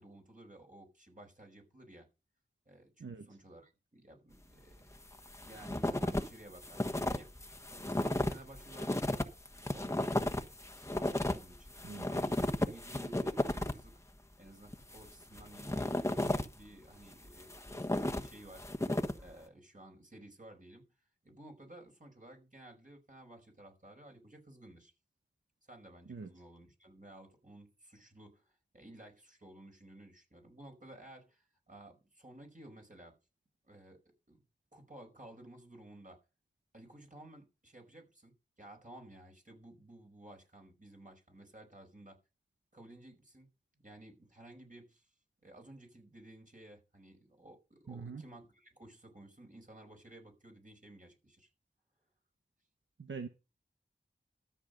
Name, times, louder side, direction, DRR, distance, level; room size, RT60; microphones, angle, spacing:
voice 1, 0.0-2.1 2.6-4.9 5.4-9.2 9.5-10.4 10.8-14.0 14.4-18.7 19.2-20.9 21.2-24.9 25.7-33.2 33.6-34.4 34.7-36.2 36.7-42.2 42.7-45.1 45.4-51.5, right 1 dB, 45° right, 5.0 m, -55 dB
sound 1, 4.9-6.3 6.5-13.9 14.7-16.6 17.1-19.3, left 1 dB, 15° left, 1.2 m, -34 dB
voice 2, 47.9-48.2 53.0-53.3, right 5 dB, 85° right, 1.0 m, -43 dB
13.5 x 7.1 x 5.3 m
wide cardioid pair, 45°, 19 cm